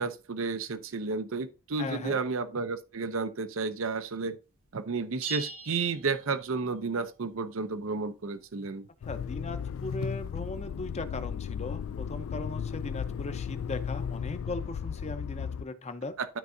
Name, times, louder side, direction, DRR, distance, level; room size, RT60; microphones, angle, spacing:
voice 1, 0.0-4.4 4.7-8.9 16.2-16.3, right 4 dB, 65° right, 0.6 m, -32 dB
voice 2, 1.8-2.2 9.0-16.1, left 2 dB, 30° left, 0.7 m, -38 dB
sound 1, 5.2-6.8, right 5 dB, 85° right, 1.2 m, -41 dB
Motor vehicle (road), 9.0-15.6, left 7 dB, 65° left, 0.3 m, -35 dB
12.5 x 4.6 x 2.6 m
head